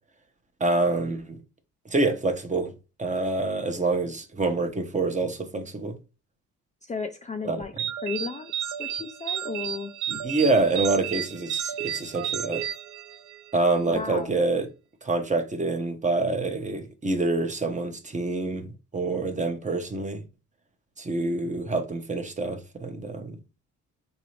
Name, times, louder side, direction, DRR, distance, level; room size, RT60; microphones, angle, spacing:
voice 1, 0.6-1.4 1.8-2.7 3.0-6.0 7.4-7.6 10.1-12.6 13.5-14.7 15.0-18.7 18.9-20.2 21.0-23.4, right 3 dB, 25° right, 0.8 m, -26 dB
voice 2, 6.8-7.7 8.0-9.9 13.9-14.3, left 4 dB, 25° left, 0.4 m, -34 dB
sound 1, 7.8-13.5, right 9 dB, 70° right, 0.5 m, -32 dB
4.0 x 2.7 x 3.1 m
cardioid pair, 90°, 30 cm